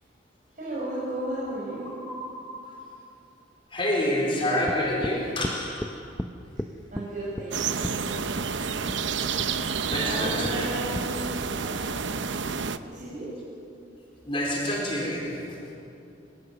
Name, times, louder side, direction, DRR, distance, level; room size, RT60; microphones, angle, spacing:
voice 1, 0.5-1.9 6.5-6.6 6.9-7.9 10.0-11.2 12.8-13.3, right 1 dB, 45° right, -7 dB, 5.8 m, -34 dB
voice 2, 2.0-2.9 3.7-6.0 9.9-10.7 11.5-12.1 14.2-15.6, left 1 dB, 30° left, -2 dB, 4.1 m, -29 dB
sound 1, 4.7-5.2 5.4-5.9 6.2-6.3 6.6-7.1 7.4-7.5 7.8-8.0 8.4-8.5 8.9-9.0 9.4-9.5 9.9-10.1 10.4-10.6 10.9-11.1, left 1 dB, 10° left, 0.7 m, -33 dB
sound 2, 7.5-12.8, right 5 dB, 85° right, 0.8 m, -29 dB
24.5 x 22.0 x 6.8 m, 2.7 s
head